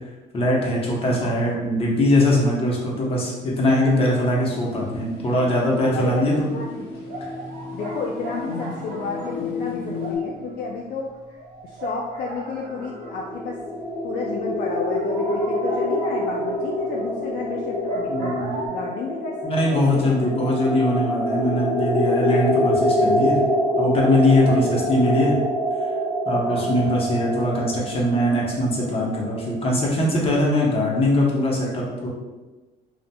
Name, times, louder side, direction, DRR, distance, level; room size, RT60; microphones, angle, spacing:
voice 1, 0.3-6.5 18.1-18.7 19.4-23.4 23.8-25.3 26.2-32.1, left 1 dB, 35° left, -3 dB, 0.9 m, -21 dB
voice 2, 1.2-1.6 2.9-3.1 5.9-6.9 7.7-11.2 11.6-13.6 14.0-20.6 24.3-24.8 26.5-27.0, left 4 dB, 65° left, -1 dB, 0.4 m, -32 dB
sound 1, 4.4-10.2, left 4 dB, 80° left, 0.8 m, -34 dB
sound 2, 5.6-6.1 6.4-6.5 7.1-13.4 13.8-13.9 14.2-14.3 14.6-18.7, right 1 dB, 70° right, 1.2 m, -36 dB
sound 3, 12.7-29.5, left 1 dB, 10° right, 0.5 m, -25 dB
4.1 x 2.3 x 2.2 m, 1.2 s
cardioid pair, 110°, 17 cm